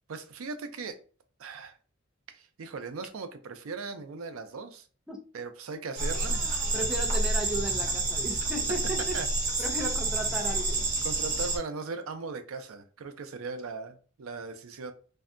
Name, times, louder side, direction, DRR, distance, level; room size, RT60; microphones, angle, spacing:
voice 1, 0.1-1.0 1.4-1.8 2.3-4.9 5.3-6.6 9.1-9.3 11.0-14.9, right 4 dB, 90° right, 8 dB, 0.5 m, -38 dB
sound 1, 6.0-11.6, right 2 dB, 40° right, 0.7 m, -29 dB
voice 2, 6.7-9.2 9.6-10.9, right 1 dB, 5° right, 1 dB, 0.4 m, -35 dB
2.6 x 2.2 x 2.4 m, 0.37 s
head